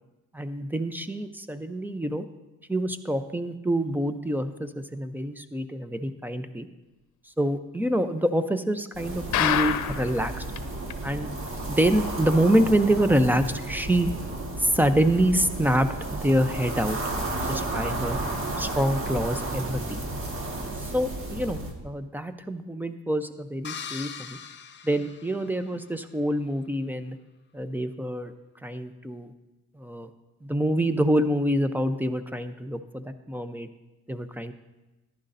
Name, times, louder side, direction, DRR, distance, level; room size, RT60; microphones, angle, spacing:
voice 1, 0.3-2.2 2.7-6.7 7.4-10.4 11.0-11.3 11.7-14.1 14.6-15.9 16.2-17.0 17.4-18.2 18.6-20.0 20.8-24.4 24.8-27.2 27.5-28.3 28.6-29.3 29.7-30.1 30.4-33.7 34.1-34.5, right 1 dB, 5° right, 10 dB, 0.6 m, -26 dB
sound 1, 8.9-21.7, right 2 dB, 45° right, 1.7 m, -33 dB
sound 2, 9.3-10.2 10.6-10.7 10.9-11.0 11.5-11.6, left 11 dB, 75° left, 0.7 m, -25 dB
sound 3, 23.6-25.9, left 7 dB, 40° left, 0.6 m, -40 dB
14.0 x 11.0 x 2.6 m, 1.1 s
cardioid pair, 90°, 30 cm